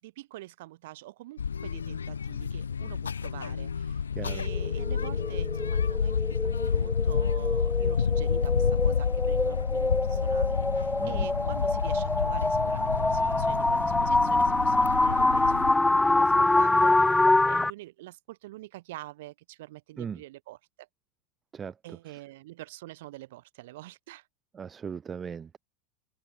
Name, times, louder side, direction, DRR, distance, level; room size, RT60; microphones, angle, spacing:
voice 1, 0.0-20.9 21.8-24.3, right 17 dB, 60° right, 7.0 m, -46 dB
sound 1, 1.4-15.7, left 6 dB, 75° left, 2.1 m, -30 dB
voice 2, 4.1-4.4 11.0-11.3 20.0-20.2 21.5-21.7 24.5-25.6, right 7 dB, 25° right, 1.0 m, -38 dB
sound 2, 4.5-17.7, left 2 dB, 10° left, 1.6 m, -25 dB
open air
figure-of-eight pair, 85°, 0 cm